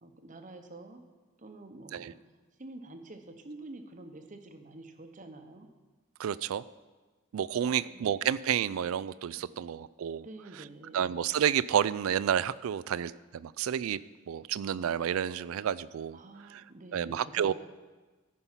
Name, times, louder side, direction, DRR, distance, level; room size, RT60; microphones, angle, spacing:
voice 1, 0.0-1.0 1.4-2.2 2.6-5.7 7.6-8.0 9.4-9.6 10.2-11.1 16.1-17.5, right 2 dB, 35° right, 6 dB, 0.9 m, -48 dB
voice 2, 6.2-6.6 7.3-10.3 10.9-14.0 14.3-16.2 16.9-17.5, right 9 dB, 80° right, 19 dB, 0.3 m, -30 dB
14.5 x 5.5 x 5.7 m, 1.3 s
head